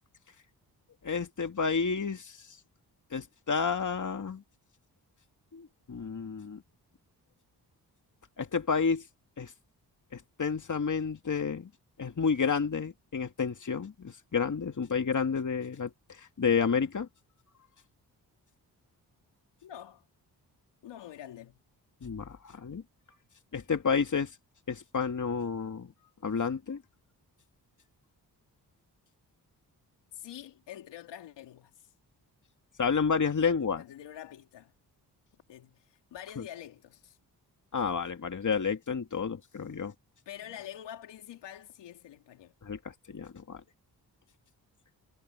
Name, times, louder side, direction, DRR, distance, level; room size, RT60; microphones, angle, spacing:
voice 1, 1.0-2.5 3.1-4.4 5.5-6.6 8.4-9.0 9.4-9.5 10.1-11.7 12.0-17.1 22.0-22.8 23.5-24.3 24.7-25.9 26.2-26.8 32.8-33.8 36.4-36.5 37.7-39.9 42.6-42.8 43.1-43.6, left 5 dB, 45° left, 2.5 m, -30 dB
voice 2, 19.6-20.1 20.8-21.6 30.1-31.9 33.8-34.7 35.5-37.2 40.3-42.5, left 11 dB, 90° left, 3.1 m, -46 dB
supercardioid pair, 50°, 41 cm